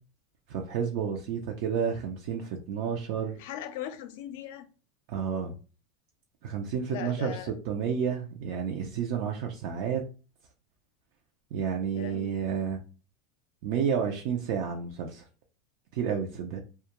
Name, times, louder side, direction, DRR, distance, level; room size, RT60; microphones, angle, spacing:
voice 1, 0.5-3.4 5.1-5.5 6.4-10.0 11.5-12.8 13.6-15.2 15.9-16.6, right 7 dB, 60° right, 0.4 m, -30 dB
voice 2, 3.4-4.6 6.9-7.5 11.9-12.3, left 10 dB, 70° left, 0.4 m, -39 dB
2.2 x 2.2 x 2.9 m
supercardioid pair, 130°, 0 cm